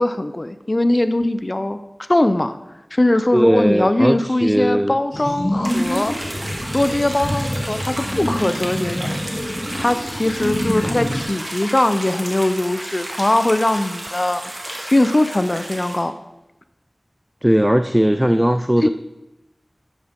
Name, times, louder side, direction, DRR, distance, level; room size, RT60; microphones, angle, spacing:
voice 1, 0.0-2.6 2.9-6.1 6.7-9.1 9.7-14.4 14.9-16.2 18.8-18.9, left 1 dB, 45° left, 11 dB, 0.6 m, -20 dB
voice 2, 3.3-5.0 17.4-18.9, equal, 15° right, 9 dB, 0.4 m, -17 dB
sound 1, 5.1-11.2, equal, 60° left, 2.7 m, -26 dB
sound 2, 5.6-16.0, right 1 dB, 55° right, 2.0 m, -32 dB
11.5 x 8.2 x 3.7 m, 0.95 s
wide cardioid pair, 45°, 0 cm